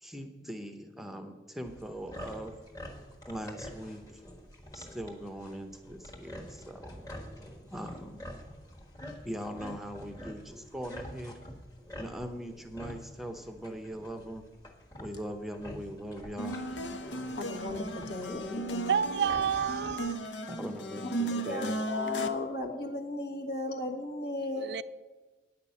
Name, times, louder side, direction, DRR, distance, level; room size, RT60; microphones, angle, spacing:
voice 1, 0.0-2.5 3.3-4.0 4.7-6.9 7.7-8.3 9.2-11.3 12.0-14.4 15.0-16.6 20.5-21.7, equal, ahead, 0.7 m, -40 dB
sound 1, 1.7-20.2, equal, 20° left, 1.4 m, -47 dB
sound 2, 16.4-22.3, right 1 dB, 85° left, 0.8 m, -36 dB
voice 2, 17.4-19.0 21.5-24.7, left 2 dB, 60° left, 1.4 m, -35 dB
voice 3, 18.9-20.2 24.6-24.8, right 8 dB, 65° right, 0.3 m, -29 dB
9.4 x 6.0 x 8.3 m
head